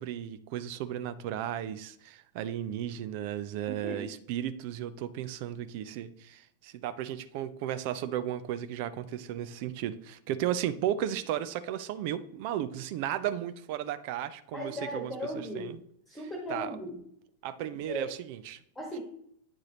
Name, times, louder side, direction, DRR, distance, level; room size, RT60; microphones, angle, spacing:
voice 1, 0.0-15.8 16.5-16.8 17.4-18.6, right 11 dB, 45° right, 13 dB, 0.4 m, -35 dB
voice 2, 14.5-15.7 16.1-16.9 17.9-18.1 18.7-19.0, equal, 10° left, -1 dB, 1.6 m, -37 dB
8.9 x 4.8 x 2.9 m, 0.67 s
figure-of-eight pair, 90°, 0 cm